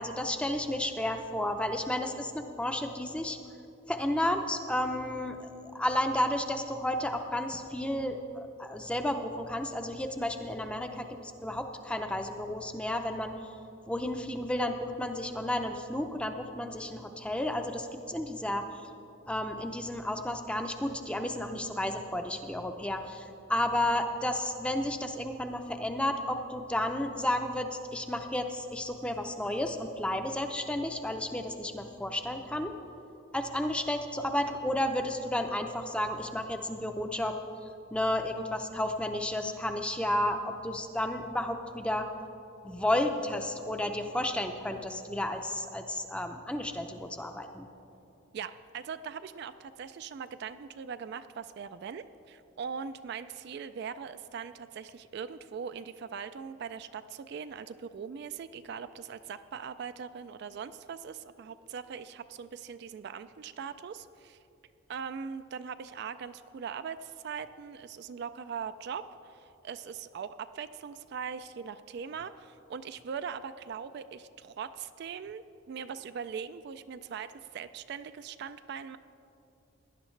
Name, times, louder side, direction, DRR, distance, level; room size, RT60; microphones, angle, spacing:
voice 1, 0.0-3.4 3.9-13.3 13.9-18.7 19.3-32.7 33.3-37.4 37.9-42.1 42.6-47.7, left 1 dB, 5° left, 6 dB, 0.5 m, -32 dB
voice 2, 48.3-64.4 64.9-79.0, right 6 dB, 55° right, 11 dB, 0.3 m, -41 dB
17.5 x 11.0 x 3.2 m, 2.8 s
head